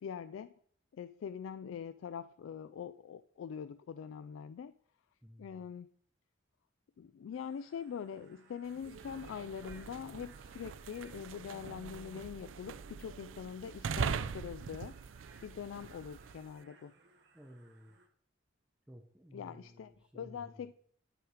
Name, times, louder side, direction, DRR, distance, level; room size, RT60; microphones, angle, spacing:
voice 1, 0.0-0.5 0.9-4.7 5.4-5.9 7.0-15.0 15.4-16.9 19.3-20.7, left 7 dB, 85° left, 0.3 m, -43 dB
voice 2, 5.2-5.6 17.3-18.0 18.9-20.7, equal, 5° right, 0.8 m, -55 dB
sound 1, 7.3-18.1, right 4 dB, 60° right, 1.5 m, -64 dB
sound 2, 8.7-16.5, right 6 dB, 90° right, 0.4 m, -42 dB
11.0 x 4.8 x 4.9 m
head